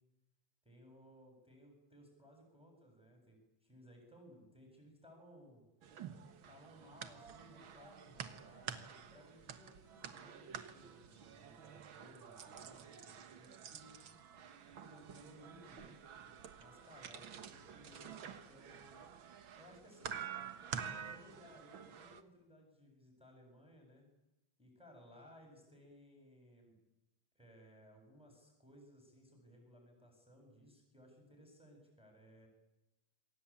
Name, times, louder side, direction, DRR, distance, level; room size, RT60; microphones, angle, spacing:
voice 1, 0.6-5.6 6.5-14.0 14.8-16.0 16.6-19.0 19.6-20.2 20.8-24.0 24.6-26.8 27.3-32.5, equal, ahead, 1 dB, 7.7 m, -61 dB
sound 1, 5.8-22.2, right 7 dB, 65° right, 1.2 m, -49 dB
27.5 x 22.0 x 8.9 m, 0.96 s
omnidirectional pair, 4.5 m